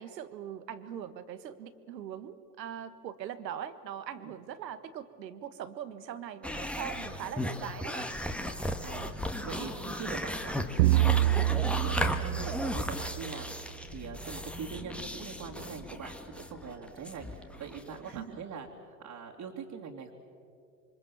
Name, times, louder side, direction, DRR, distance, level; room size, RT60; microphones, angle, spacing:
voice 1, 0.0-8.1 9.9-10.0 18.0-18.4, right 9 dB, 80° right, 12 dB, 1.6 m, -41 dB
sound 1, 6.4-18.2, left 1 dB, ahead, 1.6 m, -36 dB
voice 2, 8.8-9.1 9.4-18.7 19.0-20.1, right 6 dB, 35° right, -2 dB, 2.8 m, -42 dB
sound 2, 10.8-13.5, right 15 dB, 60° right, 0.6 m, -27 dB
27.5 x 24.5 x 7.3 m, 2.4 s
hypercardioid pair, 90°, 50 cm